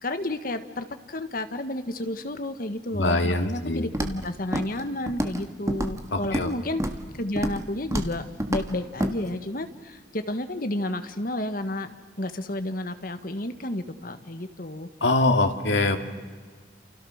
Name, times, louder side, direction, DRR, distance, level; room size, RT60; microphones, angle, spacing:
voice 1, 0.0-6.8 7.2-11.9 12.2-14.9, left 1 dB, 50° left, 9 dB, 1.6 m, -31 dB
voice 2, 2.9-3.9 6.1-6.5 15.0-16.0, left 2 dB, 80° left, 5 dB, 2.4 m, -23 dB
Walk footsteps, 3.9-4.2 4.5-4.8 5.1-5.4 5.7-6.5 6.8-7.0 7.4-7.6 7.9-8.1 8.4-8.7 9.0-9.1, right 1 dB, 15° right, 1.7 m, -28 dB
29.0 x 29.0 x 6.5 m, 1.5 s
head